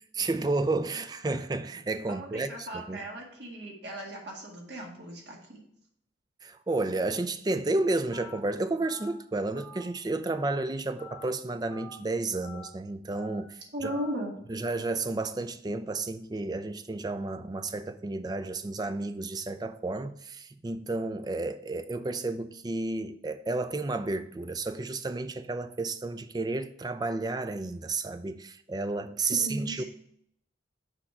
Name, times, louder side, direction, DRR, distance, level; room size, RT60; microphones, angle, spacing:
voice 1, 0.1-3.0 6.4-13.9 14.5-29.8, right 2 dB, 20° right, 0.3 m, -32 dB
voice 2, 2.1-5.6 13.7-14.4 29.3-29.8, right 1 dB, 60° right, 1.9 m, -37 dB
Telephone, 8.1-8.4 8.8-9.1 9.6-9.8 10.3-10.5 11.0-11.3 11.7-12.0 12.4-12.7 13.1-13.4 13.9-14.1, left 2 dB, 20° left, 1.1 m, -47 dB
6.4 x 4.4 x 5.6 m
head